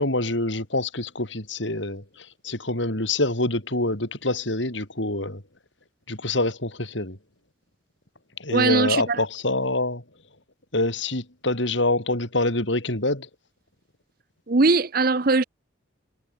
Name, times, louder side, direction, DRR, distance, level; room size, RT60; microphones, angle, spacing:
voice 1, 0.0-5.4 6.1-7.2 8.4-10.0 10.7-13.3, left 2 dB, 70° left, 5.0 m, -26 dB
voice 2, 8.5-9.2 14.5-15.4, right 3 dB, 45° right, 0.8 m, -20 dB
head